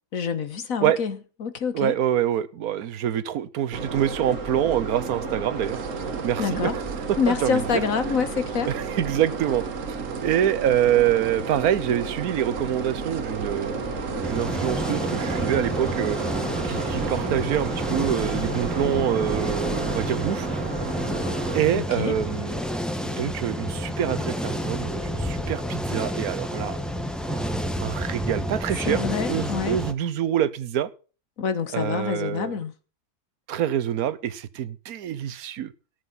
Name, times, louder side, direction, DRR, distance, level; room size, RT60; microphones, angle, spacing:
voice 1, 0.1-1.9 6.4-6.8 7.2-8.7 21.7-22.1 28.9-29.8 31.4-32.7, left 6 dB, 60° left, 1.4 m, -27 dB
voice 2, 1.7-5.8 6.2-6.8 7.3-8.2 8.7-9.6 9.9-16.2 16.6-20.5 21.5-22.5 23.0-26.8 27.3-27.6 27.8-29.0 29.3-30.9 31.7-32.6 33.5-35.7, right 10 dB, 65° right, 1.3 m, -26 dB
sound 1, 3.7-21.6, right 4 dB, 50° right, 1.9 m, -31 dB
sound 2, 5.6-17.7, right 11 dB, 85° right, 1.4 m, -40 dB
sound 3, 14.2-29.9, equal, ahead, 1.0 m, -30 dB
17.5 x 7.9 x 4.1 m
omnidirectional pair, 1.7 m